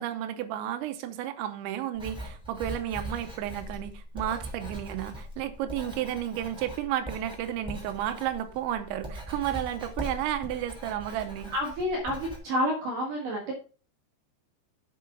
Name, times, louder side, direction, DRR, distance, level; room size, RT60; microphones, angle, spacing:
voice 1, 0.0-11.5, right 11 dB, 85° right, 3.2 m, -32 dB
Writing, 1.9-12.4, equal, ahead, 2.0 m, -41 dB
voice 2, 11.5-13.5, equal, 55° right, 3.0 m, -29 dB
8.0 x 7.8 x 3.9 m
omnidirectional pair, 5.2 m